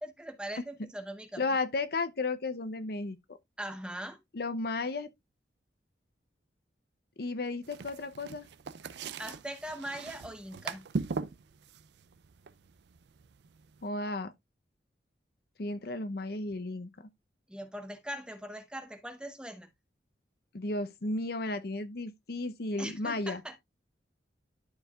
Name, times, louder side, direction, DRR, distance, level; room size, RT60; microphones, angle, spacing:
voice 1, 0.0-1.4 3.6-4.2 9.2-10.9 17.5-19.7 22.8-23.6, right 1 dB, 5° right, 0.9 m, -41 dB
voice 2, 1.4-3.2 4.3-5.1 7.2-8.5 13.8-14.3 15.6-16.9 20.5-23.4, left 3 dB, 55° left, 0.7 m, -33 dB
sound 1, 7.6-13.8, right 4 dB, 65° right, 0.4 m, -40 dB
12.0 x 4.6 x 2.3 m
head